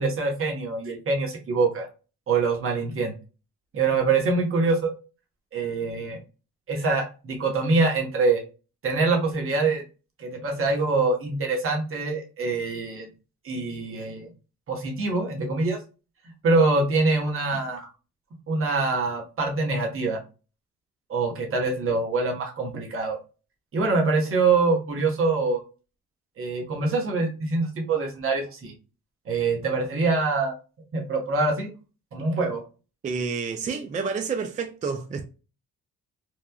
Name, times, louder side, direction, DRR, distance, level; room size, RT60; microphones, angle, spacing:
voice 1, 0.0-1.9 2.3-3.1 3.7-4.9 5.5-6.2 6.7-8.4 8.8-9.8 10.2-13.1 13.4-14.3 14.7-15.8 16.4-17.9 18.5-20.2 21.1-23.2 23.7-25.6 26.4-28.7 29.3-30.5 30.9-31.7 32.1-32.6, right 3 dB, 45° right, 1.0 m, -24 dB
voice 2, 33.0-35.3, right 5 dB, 25° right, 0.3 m, -29 dB
3.0 x 2.2 x 2.2 m
cardioid pair, 90°, 30 cm